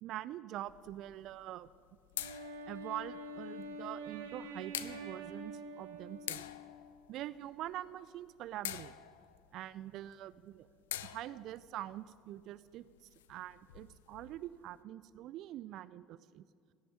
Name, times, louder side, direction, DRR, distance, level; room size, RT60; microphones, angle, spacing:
voice 1, 0.0-1.7 2.6-6.4 7.1-8.9 9.5-10.7 11.0-12.8 13.3-16.4, right 13 dB, 55° right, 16 dB, 0.3 m, -44 dB
sound 1, 0.6-14.8, left 12 dB, 75° left, 0.4 m, -48 dB
Wind instrument woodwind instrument, 2.2-6.9, right 1 dB, 75° right, 1.3 m, -46 dB
16.5 x 6.6 x 9.5 m, 2.3 s
figure-of-eight pair, 60°, 0 cm